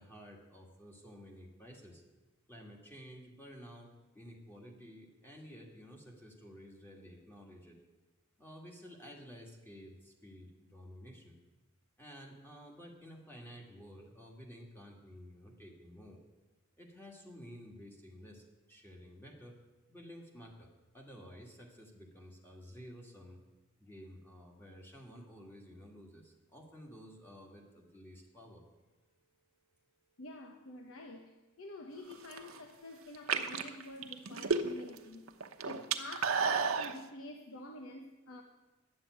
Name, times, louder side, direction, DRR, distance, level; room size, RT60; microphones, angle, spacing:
voice 1, 0.0-2.0 2.5-7.8 8.4-11.4 12.0-16.2 16.8-19.6 19.9-23.4 23.8-28.6, equal, 10° left, 0 dB, 2.2 m, -52 dB
voice 2, 30.2-35.3 35.6-38.4, left 2 dB, 70° left, 3 dB, 1.0 m, -48 dB
sound 1, 32.1-32.6 33.1-35.0 35.3-36.9, right 5 dB, 85° right, 1.0 m, -32 dB
11.5 x 7.6 x 9.4 m, 1.1 s
head